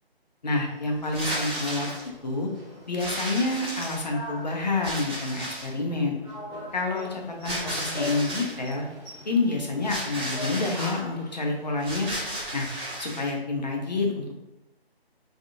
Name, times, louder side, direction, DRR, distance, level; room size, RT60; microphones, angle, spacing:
voice 1, 0.4-1.9 2.2-2.5 2.9-6.2 6.7-8.9 9.3-12.1 12.5-12.7 13.0-14.4, left 3 dB, 45° left, 1 dB, 0.6 m, -28 dB
sound 1, 0.6-13.0, left 1 dB, 5° right, 0.7 m, -43 dB
sound 2, 1.0-2.1 3.0-4.2 4.8-5.8 7.4-8.6 9.8-11.0 11.8-13.3, right 1 dB, 25° right, 1.0 m, -33 dB
3.4 x 2.3 x 2.5 m, 0.92 s
figure-of-eight pair, 155°, 31 cm